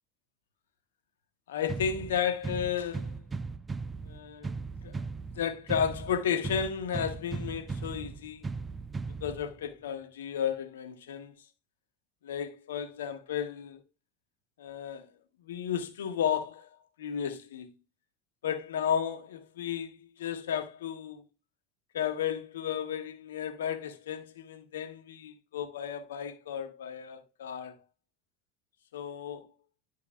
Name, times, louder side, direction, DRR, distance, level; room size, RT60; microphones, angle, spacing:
voice 1, 1.5-3.1 4.0-4.5 4.8-5.0 5.3-8.5 9.2-11.3 12.2-13.8 14.6-15.1 15.4-16.7 17.0-17.7 18.4-21.2 21.9-27.8 28.9-29.5, left 8 dB, 90° left, 1.0 m, -33 dB
sound 1, 1.7-9.7, right 4 dB, 25° right, 0.5 m, -38 dB
11.0 x 4.6 x 2.4 m
hypercardioid pair, 80°, 0 cm